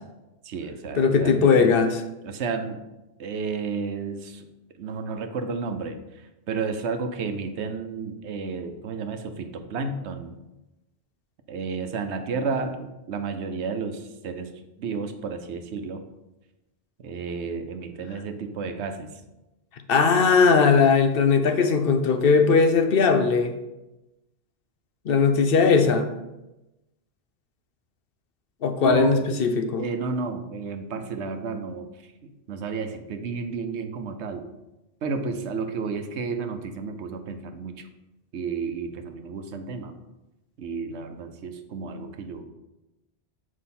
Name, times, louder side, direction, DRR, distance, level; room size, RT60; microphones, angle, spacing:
voice 1, 0.4-1.7 2.2-2.8 3.2-4.5 4.8-10.4 11.5-16.0 17.0-19.2 28.8-29.1 29.8-32.1 32.5-34.5 35.0-37.9 38.3-40.0 40.6-42.4, right 4 dB, 85° right, 7 dB, 1.0 m, -32 dB
voice 2, 1.0-1.9 19.9-23.5 25.1-26.1 28.6-29.8, left 5 dB, 60° left, 7 dB, 0.8 m, -19 dB
7.5 x 4.9 x 4.2 m, 0.99 s
omnidirectional pair, 1.1 m